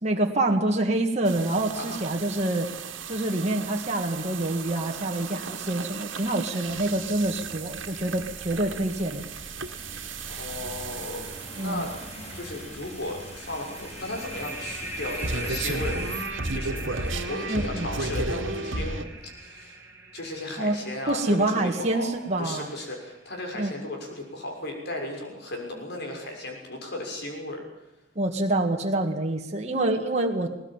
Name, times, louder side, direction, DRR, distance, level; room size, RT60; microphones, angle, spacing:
voice 1, 0.0-2.7 3.1-9.3 11.6-11.9 17.5-17.9 20.6-20.8 21.1-22.7 23.5-23.7 28.2-30.5, right 2 dB, 35° right, 1 dB, 2.0 m, -26 dB
sound 1, 1.3-19.0, right 3 dB, 80° right, 2.1 m, -35 dB
sound 2, 6.7-16.3, left 1 dB, 35° left, 4.5 m, -43 dB
voice 2, 10.3-11.3 11.6-11.9 12.3-19.1 19.4-19.8 20.1-22.1 22.4-27.6, left 1 dB, 60° left, 2 dB, 6.4 m, -35 dB
sound 3, 13.3-22.6, right 2 dB, 15° right, 3.3 m, -40 dB
20.0 x 19.5 x 9.1 m, 0.86 s
head